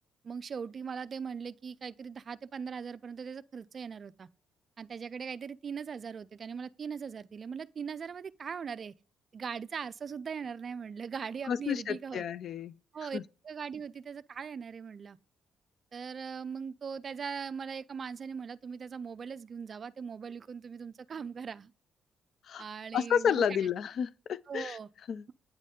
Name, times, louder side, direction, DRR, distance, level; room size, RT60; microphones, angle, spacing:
voice 1, 0.2-4.3 4.8-8.9 9.3-12.3 12.9-13.2 13.4-15.2 15.9-21.7 22.6-23.4 24.5-24.9, right 6 dB, 45° right, 0.3 m, -40 dB
voice 2, 11.5-12.7 13.1-13.2 22.5-22.6 22.9-24.8 25.1-25.2, left 7 dB, 60° left, 0.3 m, -30 dB
9.0 x 4.1 x 3.6 m
cardioid pair, 95°, 0 cm